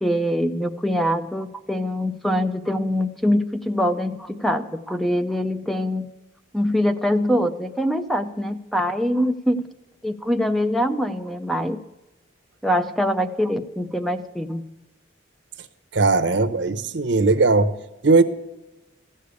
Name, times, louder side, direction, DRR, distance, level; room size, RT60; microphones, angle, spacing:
voice 1, 0.0-6.1 6.5-9.6 10.0-11.8 12.6-14.6, equal, ahead, 8 dB, 0.4 m, -23 dB
voice 2, 15.9-17.7 18.0-18.2, right 3 dB, 60° right, 12 dB, 0.8 m, -18 dB
14.5 x 6.6 x 8.2 m, 0.99 s
head